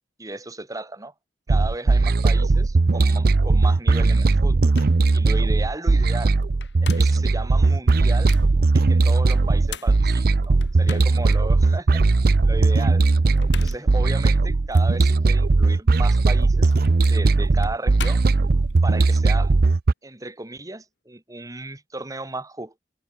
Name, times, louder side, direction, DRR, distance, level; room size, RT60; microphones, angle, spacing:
voice 1, 0.2-1.1 1.5-4.7 5.1-6.4 6.8-8.3 8.7-12.0 12.4-13.1 13.6-16.7 17.1-18.2 18.8-19.6 20.0-22.8, right 2 dB, 20° right, 1.8 m, -35 dB
sound 1, 1.5-19.9, right 3 dB, 55° right, 0.6 m, -18 dB
sound 2, 4.4-4.5 4.8-5.0 6.4-7.3 7.9-8.5 9.3-11.4 11.9-12.0 13.2-13.9 14.7-14.9 16.1-18.8, left 7 dB, 75° left, 2.0 m, -40 dB
head